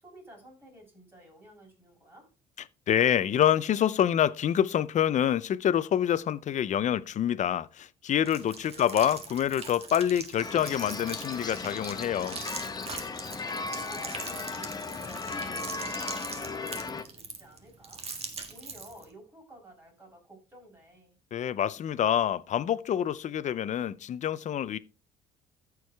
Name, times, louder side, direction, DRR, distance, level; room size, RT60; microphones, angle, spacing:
voice 1, 0.0-2.3 8.8-9.2 13.5-18.1 18.5-21.2, right 1 dB, 15° right, 5.4 m, -52 dB
voice 2, 2.9-12.4 21.3-24.8, left 10 dB, 45° left, 0.6 m, -26 dB
sound 1, 8.2-19.1, right 4 dB, 35° right, 1.8 m, -42 dB
sound 2, 10.4-17.0, left 4 dB, 25° left, 0.9 m, -36 dB
14.0 x 4.7 x 3.4 m
cardioid pair, 110°, 17 cm